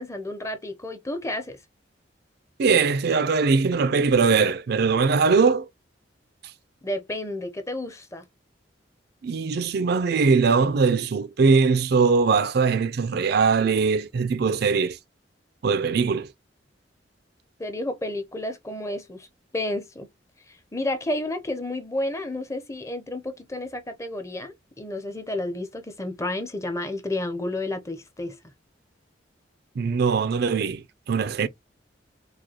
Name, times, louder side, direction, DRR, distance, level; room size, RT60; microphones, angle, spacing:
voice 1, 0.0-1.6 6.8-8.2 17.6-19.3 19.5-20.1 20.5-28.4, left 1 dB, 15° left, 0.6 m, -31 dB
voice 2, 2.6-5.7 9.2-15.0 15.6-16.3 29.8-31.5, right 5 dB, 60° right, 0.4 m, -21 dB
4.8 x 2.2 x 2.8 m
head